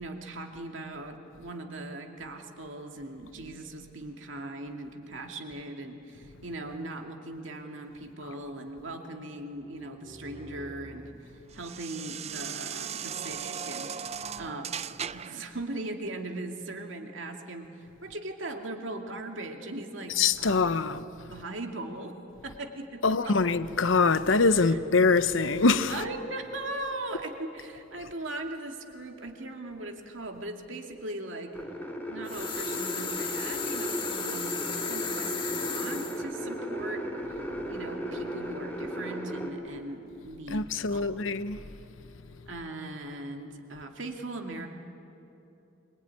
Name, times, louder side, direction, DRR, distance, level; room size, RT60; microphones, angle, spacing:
voice 1, 0.0-11.1 11.5-14.8 15.1-20.6 20.9-21.0 21.3-22.2 22.4-23.3 24.6-24.8 25.9-31.6 32.1-37.4 37.7-41.1 42.5-44.7, right 2 dB, 75° right, 2.3 m, -39 dB
sound 1, 9.6-15.5, right 7 dB, 35° right, 0.5 m, -39 dB
voice 2, 20.2-21.3 23.0-26.0 40.5-41.7, left 4 dB, 90° left, 0.9 m, -24 dB
sound 2, 31.5-39.5, equal, 10° left, 3.1 m, -35 dB
sound 3, 32.3-36.2, left 6 dB, 25° left, 1.7 m, -35 dB
23.5 x 21.0 x 9.7 m
head